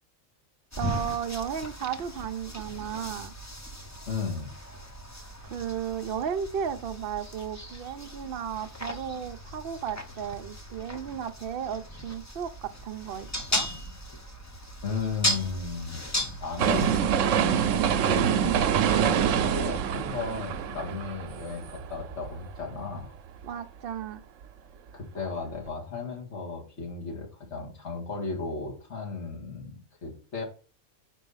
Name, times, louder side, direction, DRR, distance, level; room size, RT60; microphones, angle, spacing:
sound 1, 0.7-17.0, left 1 dB, 20° left, 0.5 m, -36 dB
voice 1, 0.8-3.3 5.4-13.7 17.3-17.9 23.4-24.2, right 8 dB, 60° right, 0.7 m, -34 dB
voice 2, 4.1-4.5 14.8-16.0 16.4-17.6 18.0-18.8 19.3-23.1 24.9-30.4, left 4 dB, 65° left, 2.1 m, -35 dB
sound 2, 16.6-22.6 23.0-23.1, right 8 dB, 80° right, 1.0 m, -25 dB
4.9 x 4.6 x 5.4 m
omnidirectional pair, 1.3 m